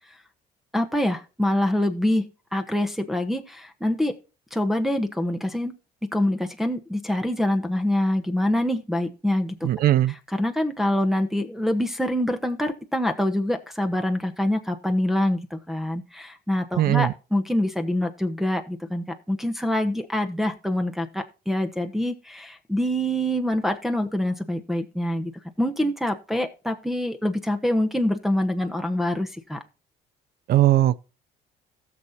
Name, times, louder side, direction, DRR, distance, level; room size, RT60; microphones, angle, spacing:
voice 1, 0.7-2.2 2.5-4.1 4.5-5.7 6.0-9.7 10.1-25.3 25.6-29.6, left 1 dB, ahead, 1.1 m, -25 dB
voice 2, 9.6-10.1 16.8-17.1 30.5-31.1, right 13 dB, 60° right, 0.6 m, -19 dB
17.0 x 6.8 x 2.8 m
cardioid pair, 110°, 17 cm